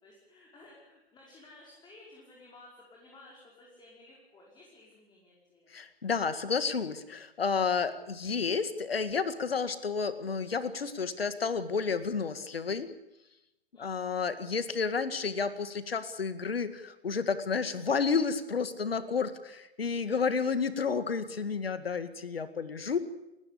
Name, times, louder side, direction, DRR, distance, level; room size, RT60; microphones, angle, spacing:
voice 1, 0.0-5.7 13.7-14.3, left 2 dB, 15° left, -2 dB, 5.4 m, -55 dB
voice 2, 5.7-12.9 13.8-23.0, left 5 dB, 70° left, 12 dB, 2.0 m, -31 dB
30.0 x 15.5 x 8.8 m, 0.92 s
figure-of-eight pair, 115°, 31 cm